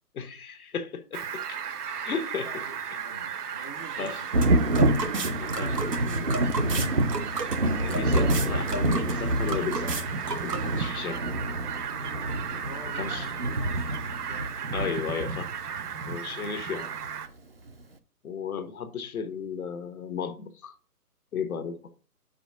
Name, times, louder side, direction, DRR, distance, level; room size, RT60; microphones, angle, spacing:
voice 1, 0.2-1.6 2.0-2.5 4.0-4.2 5.4-6.4 7.8-10.0 10.4-11.2 13.0-13.3 14.7-15.5 16.1-16.9 18.2-20.7 21.3-21.9, left 6 dB, 60° left, 1.2 m, -34 dB
Fowl, 1.1-17.3, right 7 dB, 70° right, 0.8 m, -35 dB
voice 2, 2.4-4.3 12.6-15.2, equal, 25° left, 0.5 m, -47 dB
sound 1, 3.8-10.9, right 3 dB, 90° right, 1.7 m, -35 dB
Thunder, 4.3-15.8 17.0-17.1 17.7-17.8, right 1 dB, 40° right, 0.4 m, -28 dB
5.0 x 4.6 x 6.0 m
hypercardioid pair, 155°, 48 cm